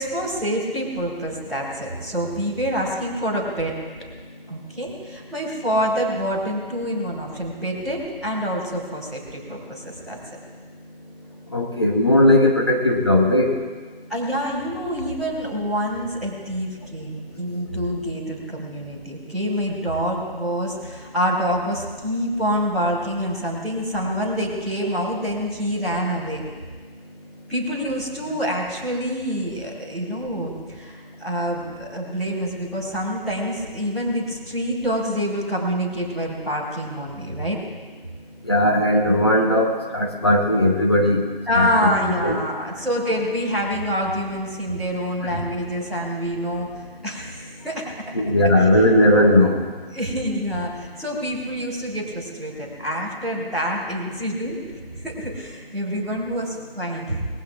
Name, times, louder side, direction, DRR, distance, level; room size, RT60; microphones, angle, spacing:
voice 1, 0.0-3.8 4.5-10.2 14.1-26.4 27.5-37.6 41.5-46.7 47.0-48.1 48.6-48.8 49.9-54.6 54.9-57.3, equal, ahead, -16 dB, 1.9 m, -26 dB
voice 2, 11.5-13.5 38.4-41.2 41.5-42.4 45.2-45.4 48.1-49.6, left 1 dB, 25° left, 0 dB, 1.1 m, -18 dB
26.0 x 20.5 x 2.5 m, 1.5 s
figure-of-eight pair, 165°, 30 cm